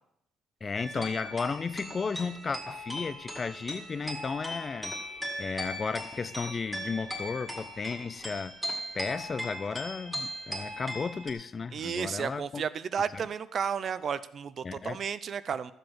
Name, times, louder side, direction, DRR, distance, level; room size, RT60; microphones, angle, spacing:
voice 1, 0.6-5.0 5.4-8.6 8.9-12.6 13.1-13.2 14.6-15.0, left 5 dB, 20° left, 0.4 m, -34 dB
sound 1, 0.8-11.3, equal, 5° right, 2.0 m, -39 dB
voice 2, 11.7-15.7, right 7 dB, 35° right, 0.5 m, -33 dB
14.0 x 7.8 x 6.2 m
cardioid pair, 175°, 0 cm